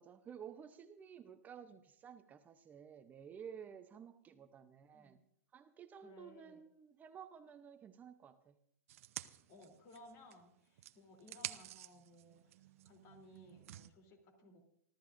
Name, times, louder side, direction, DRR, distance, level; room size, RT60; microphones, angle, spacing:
voice 1, 0.0-5.2 5.5-8.6, right 8 dB, 20° right, 0.8 m, -53 dB
voice 2, 6.0-6.6 9.5-12.4 12.8-14.6, left 1 dB, 40° left, 3.2 m, -60 dB
sound 1, 8.9-10.4 10.8-13.9, right 14 dB, 60° right, 0.7 m, -50 dB
28.5 x 13.0 x 2.6 m
hypercardioid pair, 130°, 8 cm